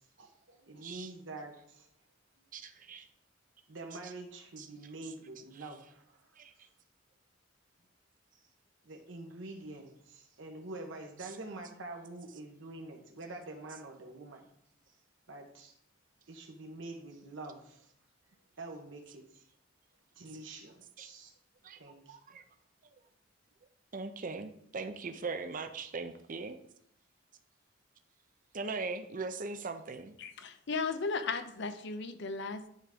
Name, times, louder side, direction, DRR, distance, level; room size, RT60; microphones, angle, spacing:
voice 1, 0.2-1.9 3.7-6.0 8.9-14.5 15.3-15.7 16.3-17.9 18.6-19.2 20.2-21.3 21.8-22.2, right 2 dB, 75° right, 2 dB, 1.2 m, -46 dB
voice 2, 0.8-1.1 2.5-3.1 4.0-4.1 4.6-4.7 5.0-5.1 5.5-5.7 6.4-6.5 11.2-11.4 21.0-21.1 21.6-21.8 22.1-22.4 23.9-26.6 28.5-30.1, right 4 dB, 45° right, 8 dB, 0.7 m, -40 dB
voice 3, 30.2-32.7, left 4 dB, 65° left, 10 dB, 0.7 m, -36 dB
10.0 x 3.6 x 5.1 m, 0.70 s
head